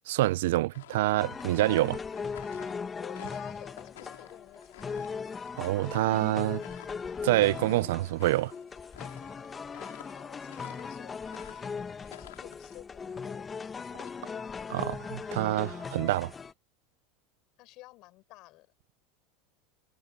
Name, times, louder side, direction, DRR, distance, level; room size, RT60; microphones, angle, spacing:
voice 1, 0.1-2.0 5.6-6.6 7.2-8.5 14.7-16.3, right 17 dB, 80° right, 0.4 m, -26 dB
sound 1, 0.7-12.8, left 14 dB, 85° left, 4.3 m, -52 dB
sound 2, 1.2-16.5, left 5 dB, 25° left, 1.6 m, -39 dB
voice 2, 3.0-5.0 9.7-11.2 12.0-13.5 13.8-14.9 17.6-18.7, left 20 dB, 55° left, 5.4 m, -52 dB
supercardioid pair, 105°, 0 cm